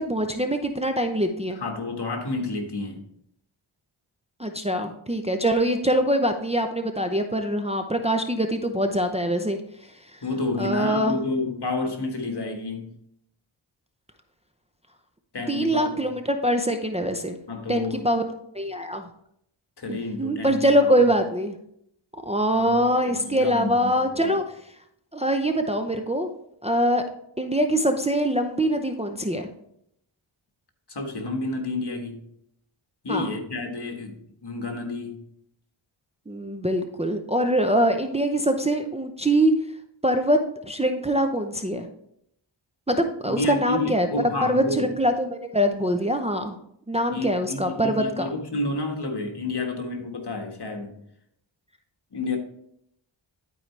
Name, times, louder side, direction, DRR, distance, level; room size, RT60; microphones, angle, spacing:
voice 1, 0.0-1.6 4.4-9.6 10.6-11.2 15.5-17.4 17.7-18.3 18.5-19.0 19.9-21.6 22.2-24.4 25.1-26.3 26.6-27.0 27.4-29.5 33.1-33.3 36.3-39.5 40.0-41.9 42.9-44.1 44.4-46.6 46.9-48.3, equal, 15° right, 5 dB, 0.6 m, -23 dB
voice 2, 1.6-3.0 10.2-12.9 15.3-16.0 17.5-18.0 19.8-21.0 22.6-24.4 30.9-32.2 33.0-35.2 43.3-44.9 47.1-50.9 52.1-52.4, left 2 dB, 55° left, 3 dB, 1.6 m, -30 dB
11.5 x 4.8 x 3.3 m, 0.72 s
wide cardioid pair, 65°, 48 cm